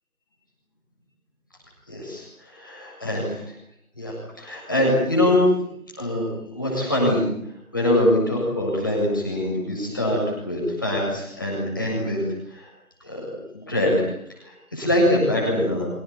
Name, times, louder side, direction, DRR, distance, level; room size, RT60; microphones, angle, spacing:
voice 1, 1.9-3.5 4.0-5.5 6.0-6.3 6.5-7.2 7.7-12.2 12.5-12.7 13.0-13.3 13.5-15.9, left 1 dB, 15° left, -3 dB, 7.5 m, -23 dB
25.5 x 18.5 x 9.8 m, 0.70 s
figure-of-eight pair, 175°, 43 cm